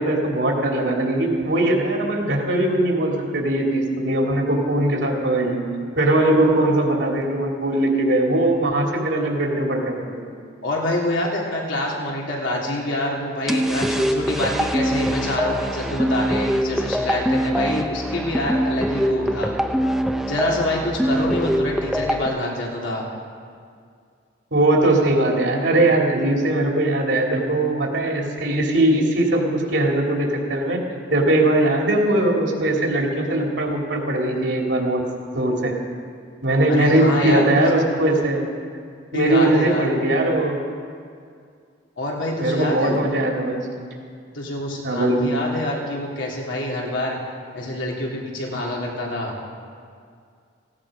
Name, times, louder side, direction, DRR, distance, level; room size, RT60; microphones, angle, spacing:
voice 1, 0.0-5.6 6.0-10.2 24.5-30.8 31.1-35.0 35.3-35.7 36.4-38.4 39.1-40.6 42.4-43.7 44.8-45.3, right 1 dB, 70° right, 0 dB, 3.0 m, -20 dB
voice 2, 10.6-19.5 20.2-23.0 36.7-37.6 39.1-39.9 42.0-43.0 44.3-47.2 47.5-49.3, left 1 dB, 80° left, -3 dB, 3.3 m, -26 dB
sound 1, 13.5-22.3, equal, ahead, 0.6 m, -23 dB
17.5 x 16.5 x 5.1 m, 2.2 s
head